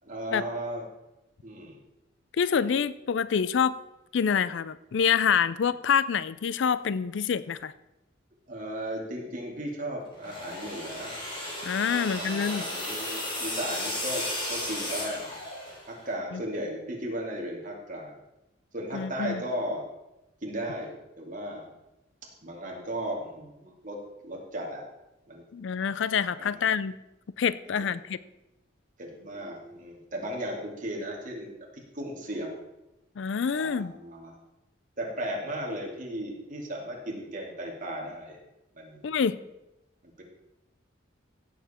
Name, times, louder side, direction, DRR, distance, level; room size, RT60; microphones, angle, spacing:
voice 1, 0.0-0.9 1.4-1.8 8.5-11.1 11.9-15.4 15.9-18.2 18.7-19.8 20.4-21.7 22.4-24.8 25.3-25.4 26.4-26.7 29.0-32.5 33.5-34.4 35.0-38.4 38.7-39.1 40.0-40.2, equal, 40° right, -1 dB, 2.4 m, -36 dB
voice 2, 2.4-3.7 4.1-7.7 11.6-12.7 16.3-16.4 18.9-19.4 25.5-26.9 27.4-28.2 33.2-33.9 39.0-39.4, left 7 dB, 65° left, 16 dB, 0.4 m, -26 dB
sound 1, 10.1-16.0, left 1 dB, 25° left, 3.3 m, -34 dB
16.0 x 7.2 x 4.3 m, 0.95 s
head